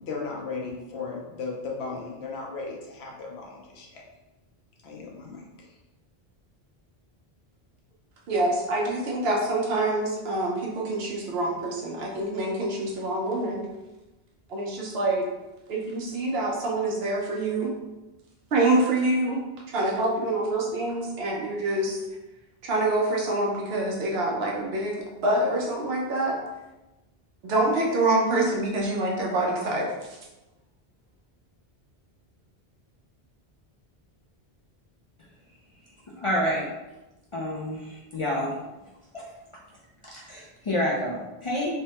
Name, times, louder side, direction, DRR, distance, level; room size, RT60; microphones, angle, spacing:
voice 1, 0.0-4.0 4.8-5.8, left 4 dB, 85° left, -1 dB, 0.9 m, -36 dB
voice 2, 8.3-13.7 14.5-15.3 15.7-17.7 18.5-19.4 19.7-22.0 22.6-26.4 27.4-30.2, right 2 dB, 75° right, -2 dB, 0.9 m, -26 dB
voice 3, 36.2-36.7 37.3-38.5 39.1-39.2 40.0-41.8, left 1 dB, 55° left, -5 dB, 0.3 m, -28 dB
3.2 x 2.1 x 2.8 m, 1.0 s
omnidirectional pair, 1.1 m